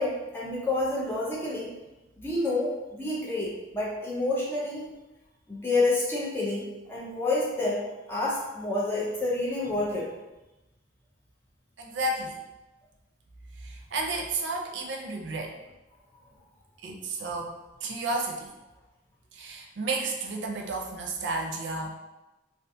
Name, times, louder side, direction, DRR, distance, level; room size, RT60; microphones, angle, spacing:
voice 1, 0.0-1.7 2.2-4.9 5.5-10.1, left 2 dB, 10° left, -5 dB, 0.5 m, -29 dB
voice 2, 11.8-12.4 13.6-15.5 16.8-17.5 17.8-18.5 19.3-22.0, right 2 dB, 80° right, 1 dB, 0.5 m, -32 dB
2.4 x 2.3 x 2.6 m, 1.0 s
head